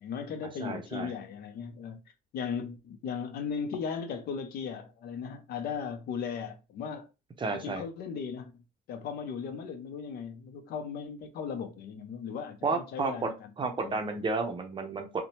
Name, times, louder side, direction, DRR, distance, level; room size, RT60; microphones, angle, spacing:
voice 1, 0.0-2.0 2.3-7.1 7.5-8.5 8.9-13.5 13.8-14.0, left 6 dB, 70° left, 0.6 m, -37 dB
voice 2, 0.6-1.1 7.4-7.8 12.6-13.3 13.6-15.1, right 3 dB, 30° right, 0.6 m, -32 dB
2.7 x 2.1 x 3.0 m
cardioid pair, 110°, 17 cm